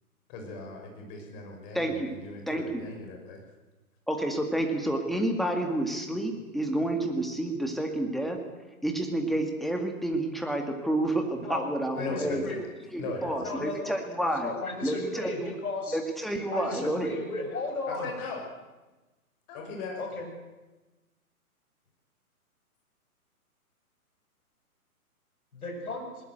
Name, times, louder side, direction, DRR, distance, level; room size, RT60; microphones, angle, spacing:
voice 1, 0.3-3.4 11.9-12.6 13.0-13.5 17.4-18.4 19.5-20.2, left 3 dB, 30° left, 2 dB, 6.3 m, -39 dB
voice 2, 1.7-2.2 2.5-2.8 4.1-8.4 8.8-12.4 12.9-14.5 14.8-15.5 15.9-17.2, right 1 dB, ahead, 3 dB, 2.0 m, -29 dB
voice 3, 11.9-12.6 13.4-13.9 14.4-16.0 16.5-18.1 20.0-20.3 25.5-26.1, left 2 dB, 70° left, 2 dB, 7.2 m, -35 dB
20.0 x 20.0 x 8.0 m, 1.1 s
figure-of-eight pair, 130°, 45 cm